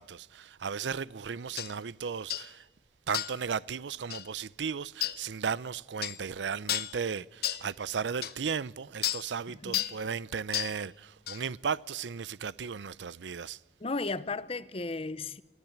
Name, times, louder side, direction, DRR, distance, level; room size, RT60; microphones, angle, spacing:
voice 1, 0.0-2.6 3.1-13.6, right 6 dB, 90° right, 0.5 m, -35 dB
sound 1, 1.6-1.7 2.3-2.5 3.1-3.4 4.1-4.3 5.0-5.2 6.0-6.2 6.7-7.0 7.4-7.7 8.2-8.3 9.0-9.3 9.7-10.0 10.5-10.8 11.3-11.4, left 13 dB, 60° left, 0.9 m, -32 dB
voice 2, 9.5-9.9 13.8-15.4, left 3 dB, 35° left, 0.8 m, -35 dB
23.5 x 15.5 x 7.2 m
head